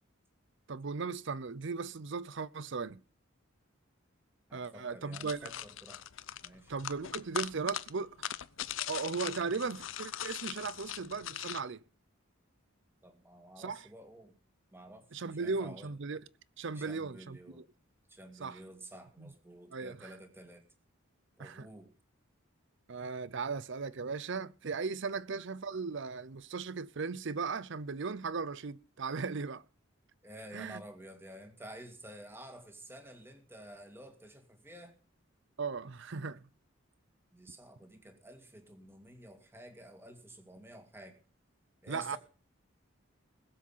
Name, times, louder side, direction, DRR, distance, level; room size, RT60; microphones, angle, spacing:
voice 1, 0.7-3.0 4.5-5.5 6.7-8.1 8.9-11.8 13.6-13.8 15.1-16.2 16.6-17.6 18.4-18.6 19.2-19.3 19.7-20.1 21.4-21.7 22.9-29.6 30.5-30.8 35.6-36.4 41.9-42.2, right 4 dB, 60° right, 0.6 m, -37 dB
voice 2, 4.5-6.0 6.4-6.7 13.0-14.3 14.7-15.9 16.7-17.6 18.1-20.6 21.4-21.9 25.0-25.2 30.2-34.9 37.3-41.2 41.8-42.2, right 1 dB, 10° right, 2.1 m, -51 dB
sound 1, 5.1-11.6, left 10 dB, 65° left, 0.7 m, -40 dB
20.5 x 7.5 x 5.6 m
head